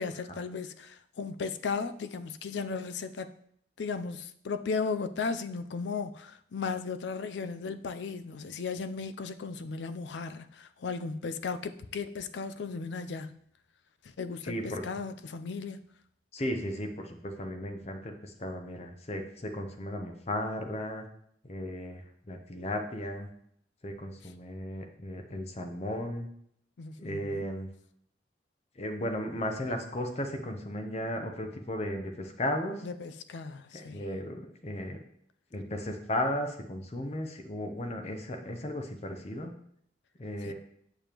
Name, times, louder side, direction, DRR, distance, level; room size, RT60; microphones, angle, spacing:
voice 1, 0.0-3.3 3.8-13.4 14.0-15.8 26.8-27.5 32.8-34.0 40.4-40.5, left 4 dB, 80° left, 11 dB, 0.4 m, -36 dB
voice 2, 14.4-14.8 16.3-21.0 21.4-23.3 23.8-26.3 27.0-27.7 28.8-32.9 33.7-35.0 35.5-39.5 40.2-40.5, left 1 dB, 35° left, 5 dB, 0.7 m, -35 dB
7.0 x 6.8 x 3.0 m, 0.68 s
head